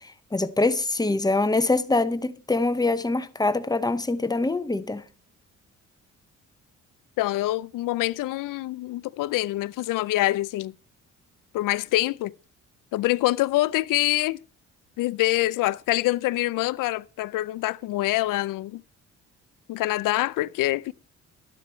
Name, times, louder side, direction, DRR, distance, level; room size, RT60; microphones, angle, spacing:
voice 1, 0.3-5.0, left 2 dB, 10° left, 0.8 m, -24 dB
voice 2, 7.2-10.7 11.5-12.3 12.9-14.4 15.0-18.8 19.7-20.9, left 17 dB, 85° left, 0.6 m, -25 dB
12.0 x 10.5 x 4.4 m
cardioid pair, 105°, 31 cm